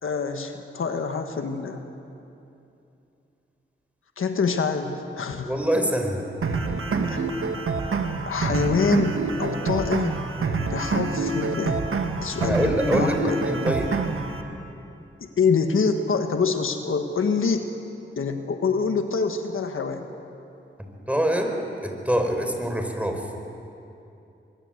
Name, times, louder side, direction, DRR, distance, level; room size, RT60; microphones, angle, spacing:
voice 1, 0.0-1.9 4.2-5.5 7.1-7.3 8.3-10.2 10.7-13.4 15.2-17.7 18.2-20.1, left 5 dB, 85° left, 6 dB, 1.5 m, -26 dB
voice 2, 5.4-6.3 12.4-13.9 21.1-23.3, equal, 5° right, 4 dB, 4.7 m, -25 dB
sound 1, 6.4-14.4, right 4 dB, 85° right, 1.7 m, -26 dB
24.0 x 22.5 x 7.9 m, 2.8 s
cardioid pair, 45°, 21 cm